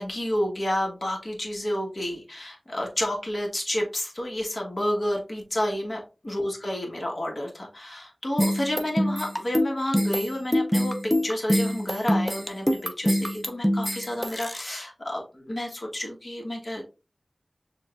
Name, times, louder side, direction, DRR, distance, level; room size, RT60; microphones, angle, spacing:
voice 1, 0.0-10.9 11.2-16.8, left 1 dB, 50° left, -1 dB, 1.4 m, -30 dB
sound 1, 8.4-14.6, equal, 5° left, 0.5 m, -24 dB
6.3 x 2.4 x 2.5 m, 0.30 s
wide cardioid pair, 60°, 0 cm